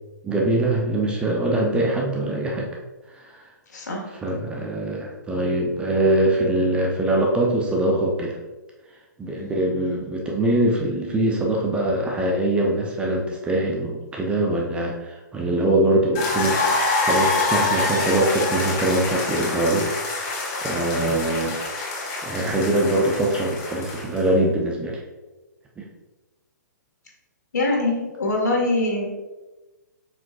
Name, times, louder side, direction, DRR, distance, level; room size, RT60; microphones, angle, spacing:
voice 1, 0.2-2.7 3.1-3.4 4.1-8.4 9.2-16.8 17.1-19.9 20.6-21.6 22.2-25.0 25.8-25.9, right 1 dB, 10° right, -1 dB, 0.8 m, -23 dB
voice 2, 3.7-4.0 9.4-9.6 27.5-29.1, left 2 dB, 60° left, -1 dB, 2.0 m, -23 dB
sound 1, 16.1-24.3, left 3 dB, 30° left, 1.7 m, -26 dB
7.1 x 5.9 x 2.5 m, 1.1 s
figure-of-eight pair, 120°, 10 cm